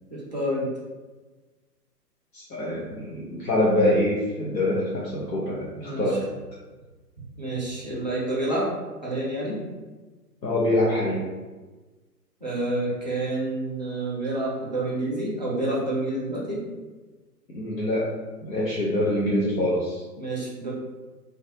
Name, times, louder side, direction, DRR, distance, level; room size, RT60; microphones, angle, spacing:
voice 1, 0.1-0.7 5.7-6.2 7.4-8.7 9.0-9.6 12.4-16.6 20.2-20.7, right 1 dB, 30° right, -6 dB, 0.4 m, -28 dB
voice 2, 2.3-6.2 10.4-11.2 17.5-18.1 18.4-20.0, left 1 dB, 80° left, -6 dB, 0.7 m, -24 dB
2.3 x 2.2 x 2.7 m, 1.3 s
figure-of-eight pair, 130°, 49 cm